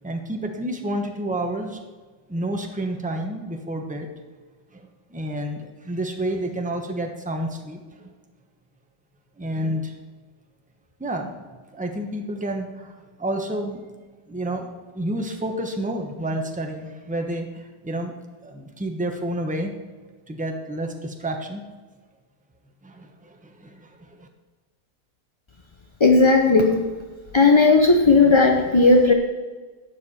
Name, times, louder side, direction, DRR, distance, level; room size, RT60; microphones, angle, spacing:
voice 1, 0.0-1.8 2.3-4.1 4.7-8.1 9.4-9.9 11.0-11.5 11.7-13.9 14.3-18.1 18.4-19.7 20.3-21.6 22.8-24.3, right 1 dB, 5° right, 3 dB, 0.8 m, -30 dB
voice 2, 26.0-26.8 27.3-29.1, left 3 dB, 40° left, 1 dB, 0.4 m, -15 dB
12.0 x 8.3 x 4.3 m, 1.4 s
omnidirectional pair, 1.9 m